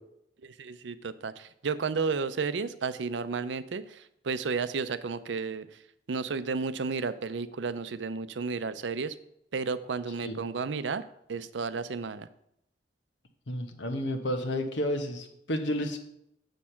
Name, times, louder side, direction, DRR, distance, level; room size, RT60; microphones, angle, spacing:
voice 1, 0.4-5.8 6.1-9.2 9.5-12.3, right 4 dB, 80° right, 13 dB, 0.5 m, -32 dB
voice 2, 13.5-16.0, equal, 85° left, 6 dB, 1.3 m, -31 dB
7.3 x 6.5 x 5.7 m, 0.78 s
head